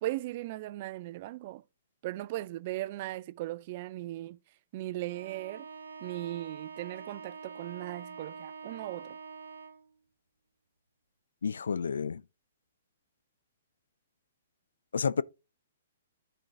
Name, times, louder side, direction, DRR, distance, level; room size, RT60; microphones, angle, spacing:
voice 1, 0.0-1.6 2.0-4.4 4.7-5.7 6.0-9.2, right 16 dB, 45° right, 0.4 m, -38 dB
Bowed string instrument, 5.1-9.9, right 5 dB, 80° right, 1.0 m, -45 dB
voice 2, 11.4-12.2 14.9-15.2, left 6 dB, 70° left, 0.4 m, -30 dB
10.5 x 4.6 x 3.7 m
figure-of-eight pair, 120°, 0 cm